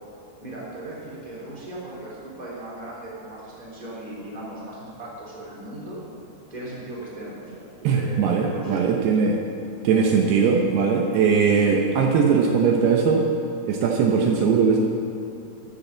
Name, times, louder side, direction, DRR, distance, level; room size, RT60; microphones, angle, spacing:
voice 1, 0.4-6.0 6.5-8.8, right 1 dB, 10° right, -6 dB, 2.9 m, -37 dB
voice 2, 7.8-9.4 9.8-13.2 13.7-14.8, right 5 dB, 75° right, 0 dB, 2.8 m, -20 dB
13.0 x 7.6 x 7.2 m, 2.8 s
omnidirectional pair, 5.0 m